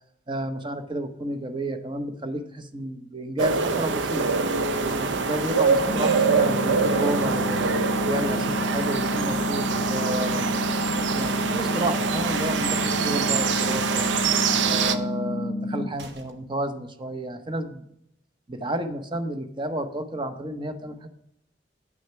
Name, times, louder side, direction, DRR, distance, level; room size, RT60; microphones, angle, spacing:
voice 1, 0.3-4.3 4.8-7.6 8.1-10.4 10.9-14.1 14.6-17.9 18.5-21.1, right 1 dB, 25° right, 9 dB, 0.8 m, -31 dB
sound 1, 3.4-15.0, right 5 dB, 85° right, 0.6 m, -24 dB
sound 2, 5.9-15.9, left 2 dB, 40° left, 0.6 m, -30 dB
sound 3, 12.2-12.7 13.9-14.3 16.0-16.5, right 3 dB, 65° right, 1.1 m, -45 dB
9.1 x 6.3 x 5.6 m, 0.78 s
head